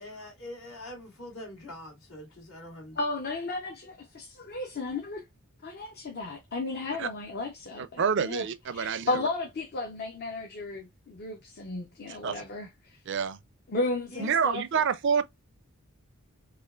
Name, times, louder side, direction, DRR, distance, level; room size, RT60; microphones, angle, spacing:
voice 1, 0.0-3.0 14.1-14.3, left 1 dB, 70° left, 2.1 m, -44 dB
voice 2, 2.9-5.2 5.6-8.5 8.7-13.0 13.7-14.8, left 2 dB, 45° left, 0.6 m, -34 dB
voice 3, 8.0-9.1 12.2-12.3 13.1-13.4 14.2-15.2, right 6 dB, 55° right, 0.4 m, -27 dB
4.9 x 2.4 x 2.3 m
head